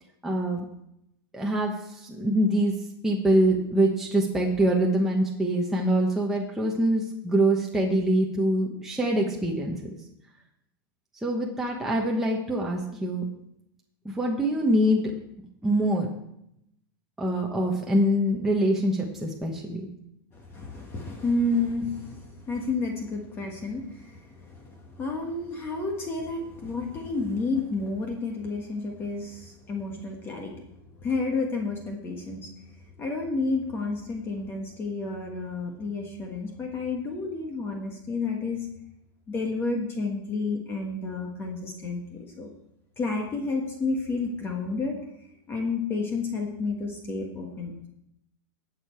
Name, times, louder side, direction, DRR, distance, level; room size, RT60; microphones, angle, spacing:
voice 1, 0.2-0.7 1.3-2.7 3.0-9.8 11.2-13.3 14.0-15.0 15.6-16.1 17.2-19.9 22.0-22.1, right 1 dB, 5° right, -2 dB, 1.1 m, -24 dB
voice 2, 20.3-30.5 31.0-32.5 33.0-38.7 39.3-42.5 43.0-45.0 45.5-47.9, left 3 dB, 20° left, 1 dB, 1.4 m, -30 dB
18.5 x 6.8 x 4.5 m, 0.79 s
supercardioid pair, 160°, 12 cm